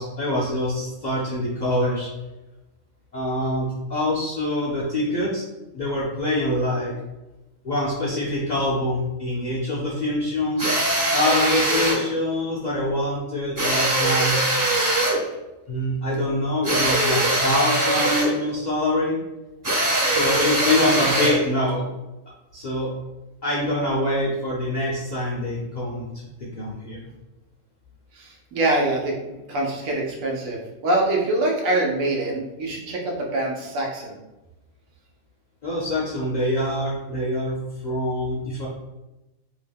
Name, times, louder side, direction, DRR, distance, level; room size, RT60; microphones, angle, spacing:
voice 1, 0.0-2.1 3.1-5.4 5.7-6.9 7.6-10.7 11.1-14.4 15.7-19.1 20.0-21.9 22.5-22.9 23.4-27.0 35.6-37.6 37.8-38.7, left 1 dB, 55° left, -6 dB, 0.5 m, -25 dB
sound 1, 10.6-12.0 13.6-15.2 16.6-18.4 19.6-21.5, right 1 dB, 25° right, 0.5 m, -21 dB
voice 2, 28.1-34.2, right 2 dB, 85° right, -1 dB, 1.1 m, -24 dB
2.8 x 2.2 x 3.4 m, 1.0 s
omnidirectional pair, 1.4 m